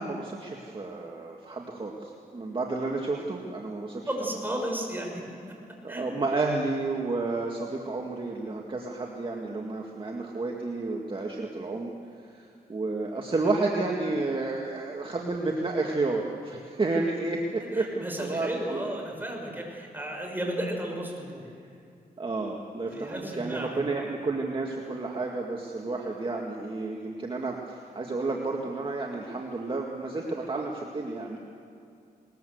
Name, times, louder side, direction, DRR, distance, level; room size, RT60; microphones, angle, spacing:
voice 1, 0.0-4.1 5.8-11.9 12.3-18.9 22.2-31.4, right 3 dB, 35° right, 0 dB, 2.0 m, -31 dB
voice 2, 4.1-5.2 5.5-5.6 5.9-6.0 17.7-21.5 22.9-23.8, right 1 dB, 10° right, 0 dB, 5.9 m, -33 dB
21.0 x 20.5 x 8.0 m, 2.4 s
cardioid pair, 105°, 16 cm